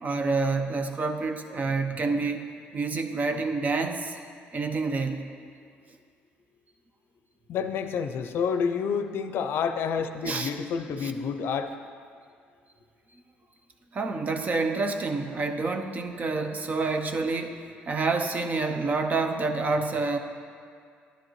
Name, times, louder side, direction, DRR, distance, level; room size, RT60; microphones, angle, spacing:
voice 1, 0.0-4.2 4.5-5.3 10.2-10.5 11.0-11.1 13.9-20.2, right 3 dB, 40° right, 6 dB, 0.8 m, -28 dB
voice 2, 7.5-11.7, left 6 dB, 70° left, 8 dB, 0.5 m, -29 dB
11.5 x 10.0 x 3.1 m, 2.2 s
cardioid pair, 90°, 4 cm